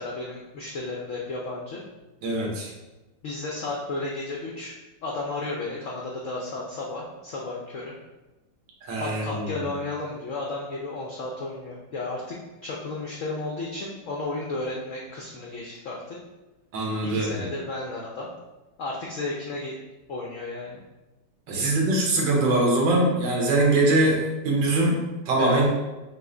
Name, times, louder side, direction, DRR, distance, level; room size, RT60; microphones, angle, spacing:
voice 1, 0.0-1.8 3.2-4.7 5.0-7.9 9.0-16.2 17.0-18.3 18.8-19.8 20.1-20.8 21.5-21.7 25.4-25.7, left 2 dB, 85° left, -2 dB, 0.6 m, -33 dB
voice 2, 2.2-2.7 8.8-9.7 16.7-17.5 21.5-25.0 25.3-25.7, right 2 dB, 75° right, -2 dB, 1.6 m, -22 dB
5.5 x 2.1 x 3.8 m, 1.1 s
omnidirectional pair, 2.1 m